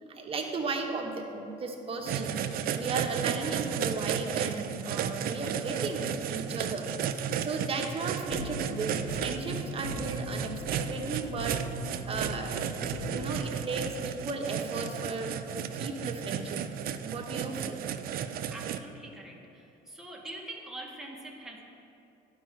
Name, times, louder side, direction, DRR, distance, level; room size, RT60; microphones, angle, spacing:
voice 1, 0.1-6.9 7.4-11.6 12.1-16.6 17.0-17.8, right 3 dB, 35° right, 2 dB, 1.0 m, -35 dB
sound 1, 2.0-18.8, right 8 dB, 60° right, 0.4 m, -34 dB
sound 2, 8.3-13.4, left 1 dB, 65° left, 1.4 m, -39 dB
voice 2, 18.5-21.6, right 1 dB, 5° right, -2 dB, 1.1 m, -44 dB
11.0 x 4.7 x 4.4 m, 2.8 s
cardioid pair, 110°, 17 cm